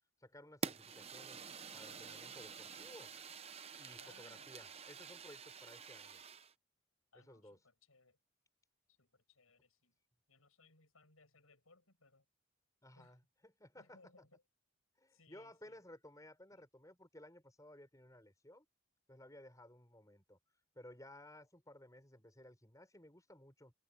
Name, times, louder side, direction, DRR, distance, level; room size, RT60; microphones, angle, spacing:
voice 1, 0.2-1.5 1.7-3.1 3.8-6.2 7.1-7.6 12.8-14.0 15.0-18.7 19.1-20.4 20.7-23.7, left 1 dB, 15° left, 6.0 m, -58 dB
Fire, 0.6-6.5, right 5 dB, 30° right, 0.8 m, -48 dB
voice 2, 1.9-2.2 4.0-4.5 7.1-8.2 8.9-10.0 10.3-12.3 12.9-13.2 13.8-14.4 15.1-15.8 16.5-16.7, left 3 dB, 80° left, 7.3 m, -67 dB
head